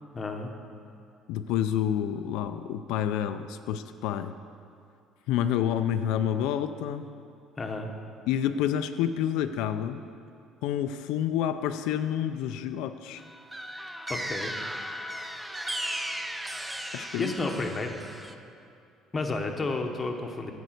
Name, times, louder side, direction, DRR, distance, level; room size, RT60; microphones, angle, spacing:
voice 1, 0.1-0.5 7.6-7.9 14.1-14.5 17.2-18.0 19.1-20.5, left 3 dB, 20° left, 3 dB, 0.8 m, -31 dB
voice 2, 1.3-4.3 5.3-7.1 8.3-10.0 10.6-13.2 16.9-17.3, left 10 dB, 85° left, 9 dB, 0.4 m, -28 dB
sound 1, 13.2-18.3, right 1 dB, 5° right, 0.4 m, -36 dB
12.5 x 5.3 x 7.9 m, 2.5 s
cardioid pair, 170°, 0 cm